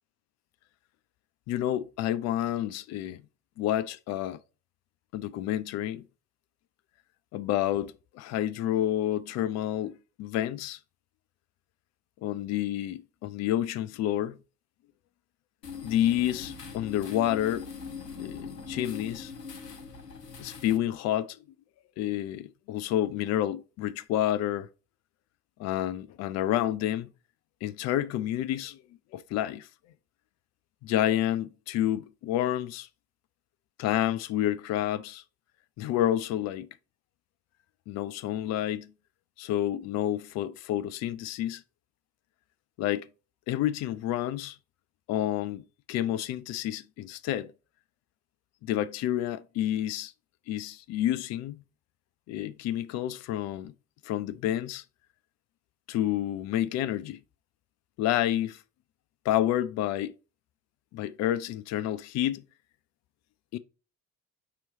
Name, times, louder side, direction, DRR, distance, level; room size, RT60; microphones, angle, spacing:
voice 1, 1.5-3.2 3.6-4.4 5.1-6.1 7.3-10.8 12.2-14.4 15.8-17.7 18.2-19.3 20.4-21.4 22.0-24.7 25.6-27.1 27.6-28.8 29.1-29.7 30.8-32.9 33.8-35.2 35.8-36.7 37.9-38.9 39.4-41.6 42.8-43.1 43.5-44.6 45.1-47.5 48.6-50.1 50.5-51.6 52.3-53.7 54.0-54.8 55.9-57.2 58.0-58.6 59.3-60.1 60.9-62.4 63.5-63.6, left 12 dB, 40° left, 0.4 m, -29 dB
sound 1, 15.6-20.8, left 5 dB, 90° left, 0.6 m, -41 dB
5.3 x 2.8 x 3.2 m
figure-of-eight pair, 50°, 46 cm